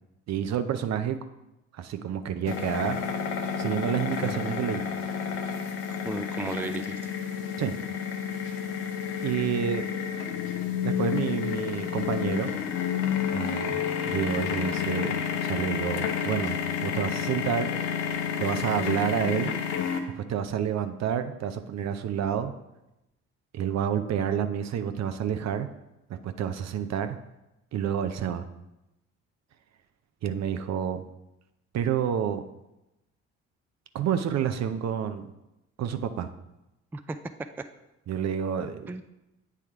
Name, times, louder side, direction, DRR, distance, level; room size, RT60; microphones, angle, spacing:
voice 1, 0.3-1.2 1.7-3.0 3.6-4.8 7.6-7.7 9.2-9.9 10.8-12.5 13.3-15.2 15.4-17.7 18.4-19.5 20.1-22.5 23.5-25.7 26.1-27.2 27.7-28.5 30.2-31.0 31.7-32.4 33.9-35.3 35.8-36.3 38.1-38.9, right 9 dB, 50° right, 9 dB, 0.6 m, -29 dB
sound 1, 2.5-20.0, left 8 dB, 85° left, 0.7 m, -30 dB
voice 2, 5.9-7.0 36.9-37.2 38.9-39.0, right 2 dB, 5° right, 8 dB, 0.4 m, -35 dB
8.3 x 3.5 x 4.5 m, 0.93 s
hypercardioid pair, 55°, 33 cm